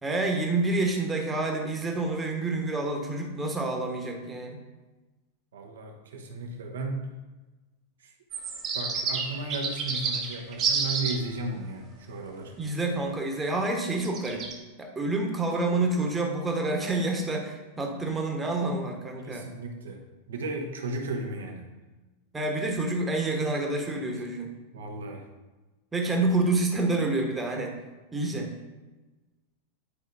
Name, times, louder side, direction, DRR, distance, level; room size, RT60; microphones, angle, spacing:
voice 1, 0.0-4.6 12.6-14.4 14.8-19.5 22.3-24.5 25.9-27.7 28.1-28.5, right 2 dB, 15° right, 1 dB, 1.2 m, -28 dB
voice 2, 5.5-7.1 8.0-8.1 8.7-12.6 19.2-20.0 20.3-21.7 24.7-25.2, right 2 dB, 65° right, 2 dB, 1.0 m, -35 dB
sound 1, 8.3-11.2 14.0-14.5, right 5 dB, 35° right, 1.0 m, -29 dB
10.0 x 5.0 x 2.7 m, 1.2 s
figure-of-eight pair, 90°, 0 cm